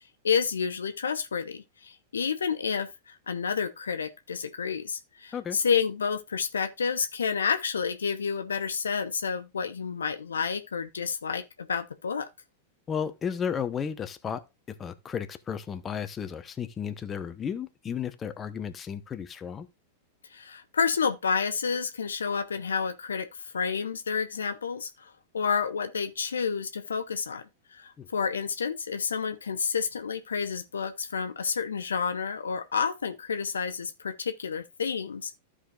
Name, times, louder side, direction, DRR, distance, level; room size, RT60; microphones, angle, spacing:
voice 1, 0.2-12.3 20.3-27.4 27.7-35.4, left 6 dB, 75° left, 0.8 m, -30 dB
voice 2, 12.9-14.4 14.8-19.7 28.0-28.1, left 7 dB, 25° left, 0.9 m, -33 dB
14.5 x 5.0 x 2.4 m
figure-of-eight pair, 95°, 0 cm